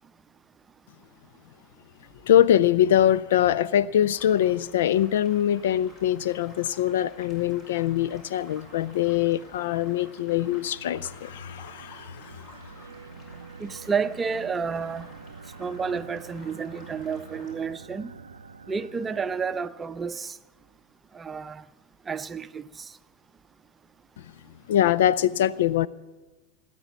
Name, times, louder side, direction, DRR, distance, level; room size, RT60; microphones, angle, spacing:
voice 1, 2.2-12.4 24.7-25.9, left 11 dB, 65° left, 0.4 m, -23 dB
sound 1, 4.1-17.5, left 1 dB, 40° left, 5.2 m, -52 dB
sound 2, 9.5-20.1, right 5 dB, 85° right, 0.6 m, -47 dB
voice 2, 13.6-15.1 15.6-18.1 18.7-20.4 21.1-21.6 22.1-22.9, right 5 dB, 20° right, 0.6 m, -30 dB
18.0 x 9.3 x 7.2 m
figure-of-eight pair, 85°, 0 cm